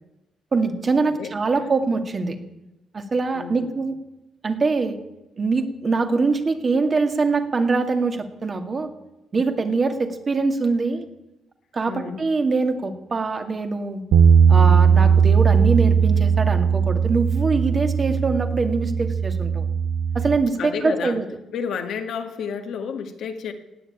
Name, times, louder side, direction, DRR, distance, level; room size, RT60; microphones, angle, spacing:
voice 1, 0.5-2.4 2.9-3.9 4.4-5.0 5.4-8.9 9.3-11.1 11.7-14.0 14.5-19.7 20.1-21.2, right 4 dB, 35° right, 5 dB, 2.1 m, -23 dB
voice 2, 1.0-1.7 3.3-3.8 11.9-12.3 20.6-21.2 21.5-23.5, left 6 dB, 70° left, 6 dB, 1.8 m, -31 dB
Bass guitar, 14.1-20.4, right 7 dB, 80° right, 0.9 m, -18 dB
17.0 x 9.5 x 8.8 m, 0.97 s
cardioid pair, 90°, 0 cm